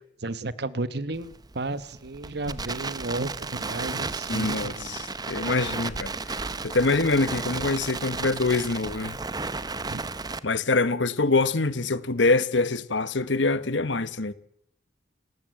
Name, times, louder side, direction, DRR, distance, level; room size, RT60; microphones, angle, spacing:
voice 1, 0.2-5.0 9.9-10.0, right 2 dB, 60° right, 1.1 m, -33 dB
Crackle, 1.1-10.4, right 3 dB, 20° right, 0.9 m, -33 dB
voice 2, 4.3-6.1 6.6-9.2 10.4-14.3, left 3 dB, 85° left, 1.3 m, -25 dB
29.5 x 14.5 x 7.8 m
head